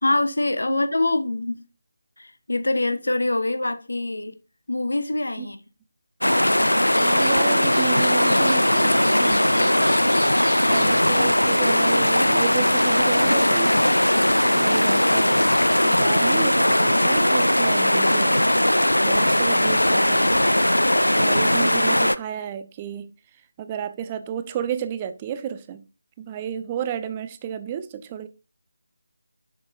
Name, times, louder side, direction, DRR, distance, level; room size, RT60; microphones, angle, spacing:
voice 1, 0.0-1.6 2.2-4.4 4.7-5.6, left 2 dB, 65° left, 0.9 m, -24 dB
sound 1, 6.2-22.2, left 1 dB, 80° left, 0.4 m, -19 dB
sound 2, 6.8-15.7, left 2 dB, 40° left, 2.4 m, -38 dB
voice 2, 7.0-10.0 10.7-13.8 14.4-15.4 15.8-18.4 19.0-20.4 21.2-23.1 23.6-25.8 26.2-28.3, right 9 dB, 20° right, 0.4 m, -32 dB
6.9 x 6.6 x 2.4 m
figure-of-eight pair, 160°, 0 cm